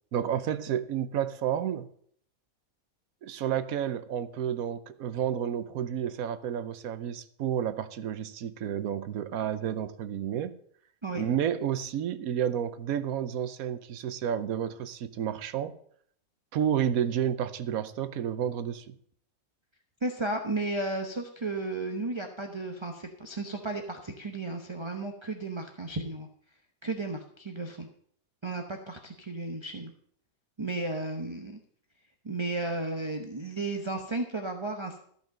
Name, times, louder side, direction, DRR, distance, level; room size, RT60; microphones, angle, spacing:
voice 1, 0.1-1.9 3.2-10.6 11.1-15.8 16.5-19.0, right 9 dB, 85° right, 13 dB, 1.2 m, -31 dB
voice 2, 20.0-26.3 26.8-27.9 28.4-29.9 30.6-31.6 32.2-35.1, right 2 dB, 25° right, 4 dB, 0.9 m, -34 dB
14.5 x 5.5 x 7.5 m, 0.63 s
omnidirectional pair, 1.5 m